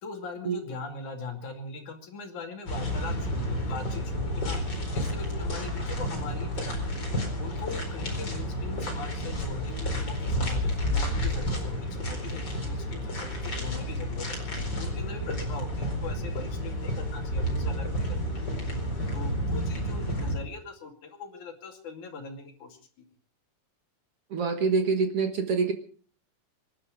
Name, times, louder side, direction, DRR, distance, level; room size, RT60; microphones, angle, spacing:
voice 1, 0.0-4.6 4.9-6.9 7.4-14.4 14.8-18.2 19.1-22.9, left 4 dB, 70° left, 4 dB, 3.9 m, -41 dB
sound 1, 2.7-20.3, equal, 30° left, 5.0 m, -30 dB
voice 2, 24.3-25.7, right 4 dB, 55° right, 7 dB, 2.0 m, -25 dB
25.0 x 11.5 x 5.0 m, 0.43 s
omnidirectional pair, 3.7 m